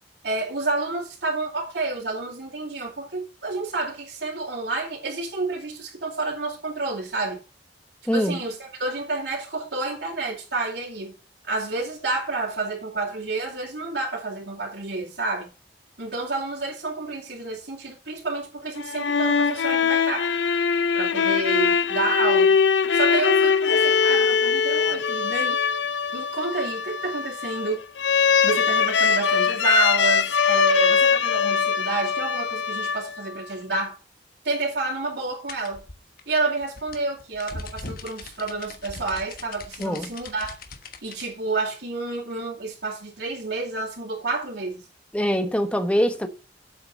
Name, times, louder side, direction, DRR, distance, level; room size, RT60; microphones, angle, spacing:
voice 1, 0.2-7.4 8.1-11.1 11.4-15.5 16.0-20.3 20.9-22.5 22.9-25.6 26.1-27.8 28.4-34.0 34.4-35.8 36.3-40.5 41.0-44.8, right 3 dB, 65° right, 3.1 m, -29 dB
voice 2, 8.1-8.4 39.8-40.1 45.1-46.3, equal, 5° left, 1.2 m, -23 dB
sound 1, 18.8-33.4, left 6 dB, 85° left, 0.6 m, -22 dB
sound 2, 35.5-41.3, left 3 dB, 55° left, 1.3 m, -40 dB
8.1 x 5.9 x 6.3 m
head